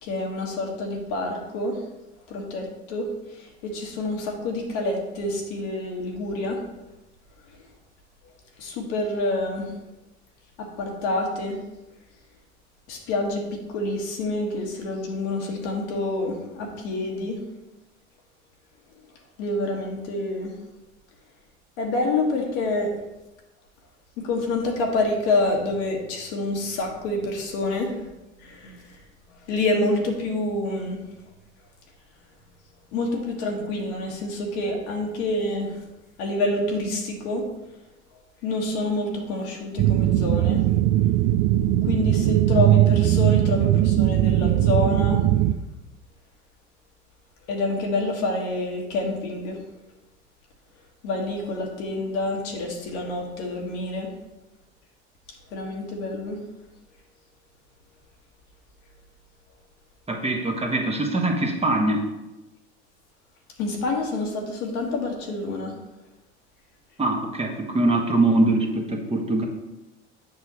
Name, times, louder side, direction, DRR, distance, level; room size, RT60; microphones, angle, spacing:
voice 1, 0.0-1.8 2.3-3.1 3.6-6.6 8.6-9.7 10.6-11.6 12.9-17.4 19.4-20.5 21.8-22.9 24.2-28.1 28.4-28.7 29.5-31.0 32.9-35.8 36.2-37.4 38.4-40.7 41.8-45.3 47.5-49.6 51.0-54.1 55.5-56.4 63.6-65.7, left 2 dB, 65° left, 0 dB, 1.6 m, -27 dB
sound 1, 39.8-45.5, right 13 dB, 55° right, 0.5 m, -19 dB
voice 2, 60.1-62.1 67.0-69.4, right 2 dB, 20° right, 1 dB, 1.2 m, -23 dB
7.9 x 5.7 x 3.0 m, 0.99 s
hypercardioid pair, 70°, 34 cm